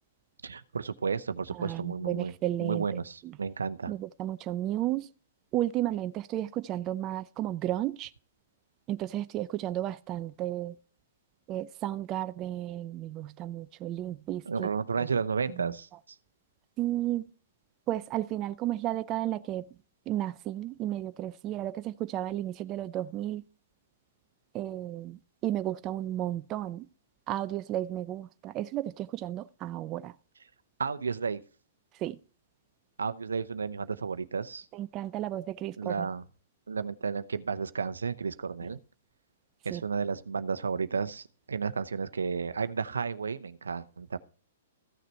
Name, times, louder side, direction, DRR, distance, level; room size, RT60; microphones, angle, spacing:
voice 1, 0.4-2.3 2.6-3.9 14.5-16.2 30.8-31.4 33.0-34.7 35.8-36.2 36.7-38.8 39.6-44.2, right 5 dB, 80° right, 0.7 m, -32 dB
voice 2, 1.5-3.4 3.9-5.1 5.5-8.1 8.9-10.8 11.5-14.7 15.0-15.1 15.5-15.7 16.8-17.2 17.9-19.7 20.1-23.4 24.5-26.9 27.3-30.1 32.0-32.2 34.7-36.1 39.7-39.8, right 13 dB, 30° right, 0.5 m, -33 dB
14.5 x 6.7 x 4.4 m
hypercardioid pair, 120°, 0 cm